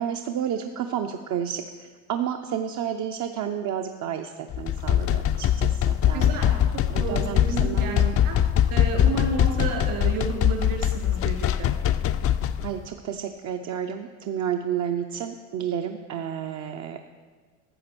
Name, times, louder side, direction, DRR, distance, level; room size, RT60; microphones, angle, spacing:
voice 1, 0.0-6.5 6.9-8.2 12.6-17.1, right 9 dB, 50° right, 4 dB, 0.7 m, -31 dB
sound 1, 4.5-12.7, left 10 dB, 40° left, 0.5 m, -22 dB
voice 2, 6.1-6.5 7.0-8.4 8.7-11.7, right 5 dB, 70° right, 1 dB, 3.2 m, -31 dB
13.0 x 7.4 x 6.1 m, 1.5 s
supercardioid pair, 100°, 36 cm